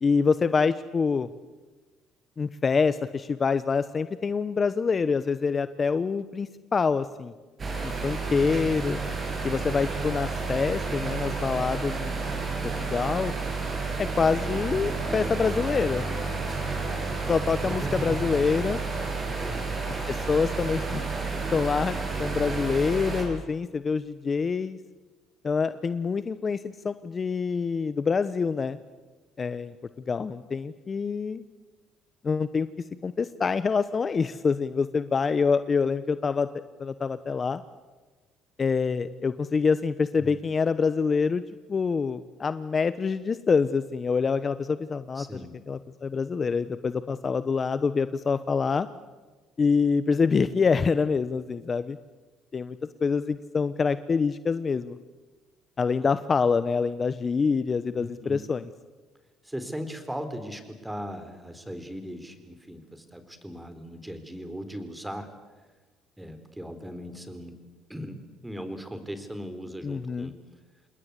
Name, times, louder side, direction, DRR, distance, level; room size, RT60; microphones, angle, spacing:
voice 1, 0.0-1.3 2.4-7.3 7.8-9.0 9.4-13.3 14.0-16.1 17.3-18.8 20.1-21.0 21.5-24.8 25.4-28.8 29.4-29.7 30.1-31.4 32.2-32.7 33.0-37.6 38.6-41.4 41.7-45.3 45.7-48.9 49.6-52.0 52.5-55.0 55.8-58.6 69.8-70.3, left 5 dB, 35° left, 13 dB, 0.9 m, -26 dB
sound 1, 7.6-23.2, right 4 dB, 35° right, 7.7 m, -31 dB
voice 2, 17.6-18.2 19.2-19.8 40.2-40.3 45.2-45.5 58.0-58.4 59.4-65.3 66.2-67.6 67.9-68.2 68.4-70.3, equal, 5° right, 9 dB, 4.0 m, -38 dB
27.5 x 20.5 x 8.2 m, 1.3 s
supercardioid pair, 80°, 0 cm